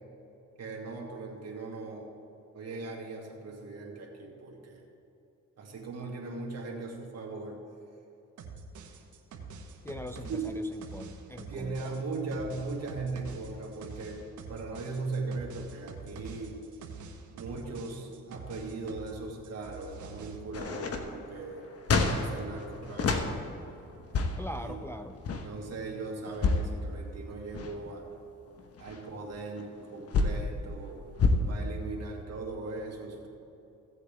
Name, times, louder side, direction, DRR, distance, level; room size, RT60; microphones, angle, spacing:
voice 1, 0.6-2.1 2.5-4.8 5.6-7.6 10.3-10.5 11.5-14.2 14.5-16.6 17.3-21.7 22.1-23.4 24.6-24.8 25.4-28.1 28.8-31.0 31.4-33.3, right 3 dB, 55° right, -1 dB, 2.2 m, -39 dB
sound 1, 8.4-19.2 19.4-20.4, right 4 dB, 75° right, 1.2 m, -45 dB
voice 2, 9.8-10.6 10.9-11.8 24.4-25.2, left 1 dB, 10° left, 6 dB, 0.4 m, -41 dB
sound 2, 20.5-23.3 23.9-24.6 25.1-25.5 26.2-26.7 27.3-27.9 28.5-30.4 31.2-31.4, left 4 dB, 50° left, 1.2 m, -28 dB
16.0 x 8.1 x 3.6 m, 2.9 s
cardioid pair, 90°, 30 cm